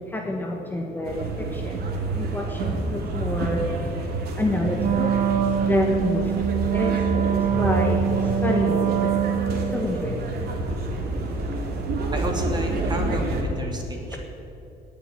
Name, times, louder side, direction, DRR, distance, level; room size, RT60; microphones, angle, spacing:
voice 1, 0.1-1.8 2.1-3.6 4.4-5.2 5.6-10.3, left 1 dB, 10° left, 0 dB, 1.5 m, -28 dB
sound 1, 1.0-13.4, right 2 dB, 70° right, 2.7 m, -28 dB
Wind instrument woodwind instrument, 4.8-9.9, right 9 dB, 55° right, 1.1 m, -24 dB
voice 2, 12.1-14.2, right 1 dB, 25° right, 2 dB, 2.8 m, -31 dB
18.5 x 6.8 x 9.9 m, 2.9 s
cardioid pair, 110°, 17 cm